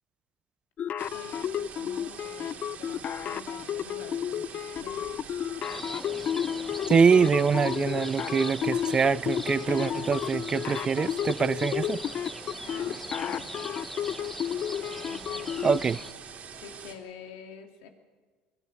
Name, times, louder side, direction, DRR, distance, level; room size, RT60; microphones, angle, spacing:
sound 1, 0.8-15.8, left 9 dB, 45° left, 0.6 m, -32 dB
sound 2, 1.0-17.0, right 6 dB, 45° right, 3.0 m, -44 dB
voice 1, 1.1-5.3 12.6-13.7 15.0-16.0 16.6-17.9, left 6 dB, 80° left, 3.0 m, -48 dB
sound 3, 5.6-16.1, left 1 dB, 5° left, 0.9 m, -41 dB
voice 2, 6.9-12.0 15.6-16.0, right 6 dB, 30° right, 0.5 m, -24 dB
22.5 x 13.0 x 9.9 m
supercardioid pair, 90°, 3 cm